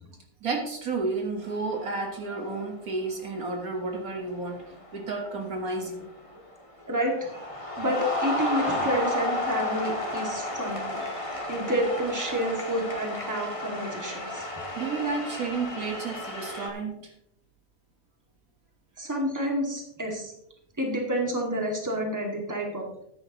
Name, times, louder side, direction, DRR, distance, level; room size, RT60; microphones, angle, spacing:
voice 1, 0.4-4.6 4.9-6.1 14.8-17.1 19.0-19.1, right 3 dB, 60° right, 2 dB, 1.8 m, -31 dB
sound 1, 1.4-1.9 2.2-2.7 3.6-3.8 4.2-6.4 6.8-16.7, left 1 dB, 20° left, 1.5 m, -33 dB
voice 2, 6.9-7.3 7.8-11.2 11.5-14.5 19.0-20.3 20.8-22.9, equal, 10° right, 0 dB, 2.1 m, -29 dB
13.5 x 10.0 x 3.0 m, 0.76 s
omnidirectional pair, 1.7 m